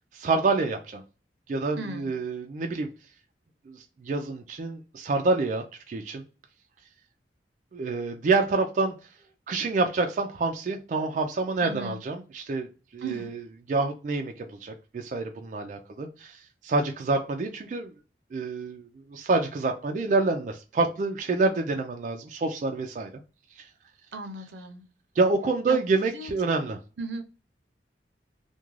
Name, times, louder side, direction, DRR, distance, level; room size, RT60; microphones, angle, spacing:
voice 1, 0.1-1.0 1.5-2.9 3.7-6.2 7.7-8.9 9.5-12.7 12.9-13.4 13.7-17.9 18.3-23.1 23.6-23.7 25.2-26.8, right 3 dB, 45° right, 4 dB, 0.3 m, -27 dB
voice 2, 1.8-2.1 11.6-12.0 13.0-13.3 24.1-24.8 25.7-25.8 26.1-26.3 27.0-27.2, right 3 dB, 85° right, 6 dB, 0.6 m, -36 dB
2.4 x 2.2 x 3.0 m, 0.34 s
head